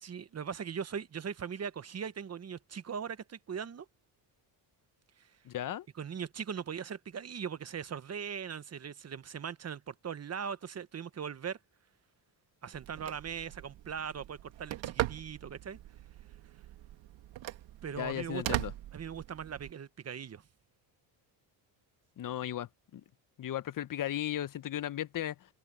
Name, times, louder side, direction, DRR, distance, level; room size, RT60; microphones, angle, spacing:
voice 1, 0.0-3.9 5.2-5.3 6.0-11.6 12.6-15.8 17.8-18.6 18.9-20.4, right 7 dB, 35° right, 1.1 m, -40 dB
voice 2, 5.4-5.9 17.9-18.7 22.2-23.0 23.4-25.5, left 12 dB, 45° left, 0.8 m, -36 dB
Telephone, 12.7-19.7, right 14 dB, 75° right, 1.8 m, -40 dB
cardioid pair, 105°, 46 cm